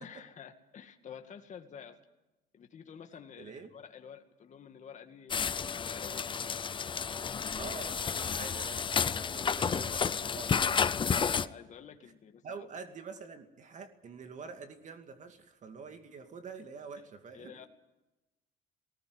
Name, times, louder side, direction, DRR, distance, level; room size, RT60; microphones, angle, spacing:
voice 1, 0.0-2.0 2.5-6.6 11.4-12.7 17.0-17.1 17.3-17.7, left 7 dB, 45° left, 5 dB, 2.2 m, -50 dB
voice 2, 3.4-3.7 7.6-10.8 11.1-11.5 12.4-17.6, right 5 dB, 45° right, 7 dB, 2.4 m, -46 dB
sound 1, 5.3-11.5, left 6 dB, 30° left, 0.7 m, -31 dB
19.0 x 18.5 x 9.7 m, 1.0 s
cardioid pair, 110°, 17 cm